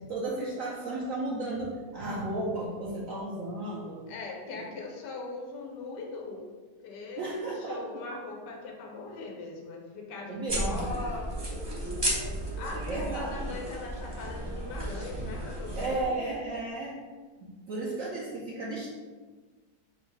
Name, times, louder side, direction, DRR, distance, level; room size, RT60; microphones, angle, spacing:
voice 1, 0.1-4.1 4.5-4.6 7.2-8.0 10.3-11.0 12.7-13.5 15.8-17.0 17.4-18.9, right 2 dB, 60° right, -5 dB, 1.0 m, -34 dB
voice 2, 4.1-6.4 6.8-7.2 7.7-11.6 12.6-16.2, left 3 dB, 85° left, 0 dB, 1.4 m, -40 dB
sound 1, 10.5-16.0, right 1 dB, 25° right, 0.6 m, -34 dB
3.9 x 2.7 x 4.6 m, 1.4 s
omnidirectional pair, 1.8 m